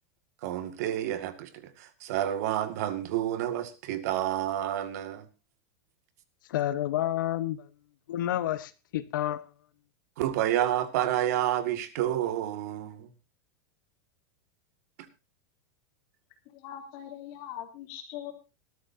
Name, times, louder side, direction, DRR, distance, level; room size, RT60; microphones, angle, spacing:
voice 1, 0.4-5.3 10.2-13.1, right 12 dB, 50° right, 2.0 m, -29 dB
voice 2, 6.5-7.7 8.1-9.5, left 12 dB, 70° left, 1.2 m, -30 dB
voice 3, 16.5-18.3, left 11 dB, 35° left, 3.3 m, -41 dB
19.5 x 13.0 x 2.7 m
supercardioid pair, 180°, 11 cm